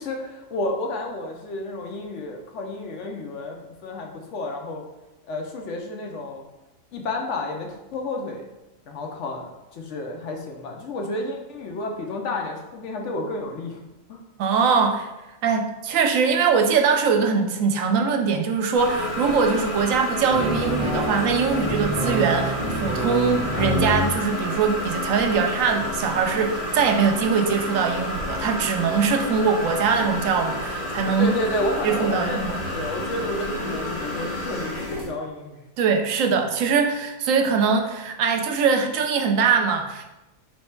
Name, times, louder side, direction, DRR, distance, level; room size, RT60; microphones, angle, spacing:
voice 1, 0.0-4.8 5.3-6.4 6.9-8.4 8.9-9.5 9.7-13.8 14.1-14.2 31.2-35.6, left 2 dB, 70° left, 2 dB, 0.9 m, -31 dB
voice 2, 14.4-15.1 15.4-31.3 31.8-32.5 35.8-40.0, right 5 dB, 80° right, 4 dB, 1.0 m, -22 dB
sound 1, 18.7-35.1, left 1 dB, 90° left, 1.7 m, -30 dB
sound 2, 20.3-24.1, right 1 dB, 40° left, 1.6 m, -27 dB
3.2 x 3.2 x 4.4 m, 0.99 s
omnidirectional pair, 1.4 m